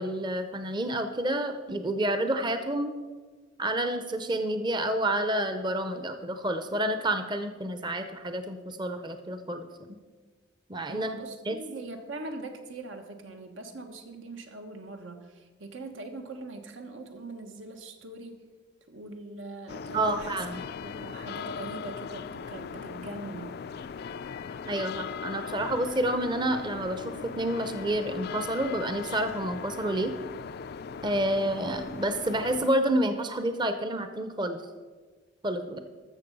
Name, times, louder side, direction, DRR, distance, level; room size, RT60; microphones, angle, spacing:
voice 1, 0.0-2.9 3.6-10.0 10.7-11.1 11.5-11.6 19.9-20.6 24.6-30.1 31.0-34.6 35.4-35.8, right 1 dB, 25° right, 8 dB, 0.6 m, -29 dB
voice 2, 10.9-18.4 18.9-20.4 20.8-23.5, right 2 dB, 85° right, 5 dB, 1.3 m, -42 dB
sound 1, 19.7-32.7, left 6 dB, 55° left, 0.3 m, -39 dB
14.0 x 6.8 x 5.3 m, 1.4 s
head